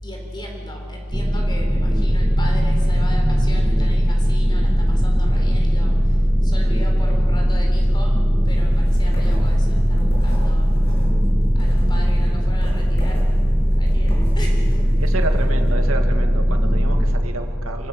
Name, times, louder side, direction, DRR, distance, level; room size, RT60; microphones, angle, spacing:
voice 1, 0.0-8.2 8.4-10.7 11.5-13.2 13.8-15.1, left 1 dB, 20° left, 1 dB, 4.3 m, -33 dB
sound 1, 1.1-17.1, equal, 15° right, 1.3 m, -18 dB
sound 2, 8.4-15.8, equal, 65° left, 7.8 m, -33 dB
voice 2, 15.0-17.9, right 2 dB, 80° right, 5 dB, 2.0 m, -30 dB
27.0 x 16.5 x 7.2 m, 2.3 s
head